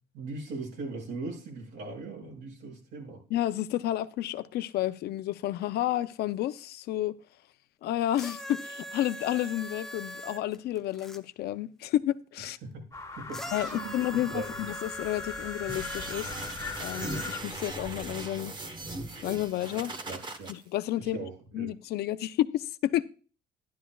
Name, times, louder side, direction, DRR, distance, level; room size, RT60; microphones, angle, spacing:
voice 1, 0.1-3.2 12.6-12.9 13.2-14.7 20.1-20.5 21.0-21.8, right 3 dB, 85° right, 6.2 m, -40 dB
voice 2, 3.3-7.2 7.8-12.6 13.5-16.3 16.8-18.5 19.2-19.9 20.5-21.2 21.5-23.1, left 13 dB, 70° left, 0.6 m, -31 dB
sound 1, 8.1-11.2 13.3-16.6 17.5-17.6, equal, ahead, 0.6 m, -41 dB
sound 2, 12.9-17.4, left 5 dB, 20° left, 1.9 m, -40 dB
sound 3, 15.7-20.5, right 2 dB, 25° right, 1.2 m, -38 dB
12.0 x 11.0 x 2.3 m
cardioid pair, 110°, 17 cm